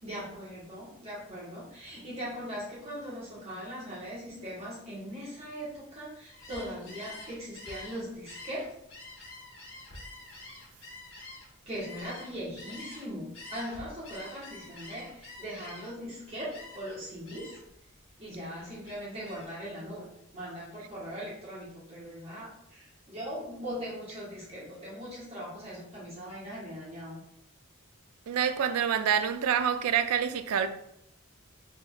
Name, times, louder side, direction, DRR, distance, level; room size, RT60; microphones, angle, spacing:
voice 1, 0.0-8.6 11.6-17.5 18.2-20.0 20.3-27.2, equal, 30° right, 1.3 m, -40 dB
Gull seagull, 6.3-13.1 13.3-16.1 16.5-17.0 17.3-17.7 18.1-19.6, left 2 dB, 60° left, 1.3 m, -47 dB
voice 2, 28.3-30.7, right 8 dB, 85° right, 0.4 m, -27 dB
3.8 x 3.4 x 2.3 m
head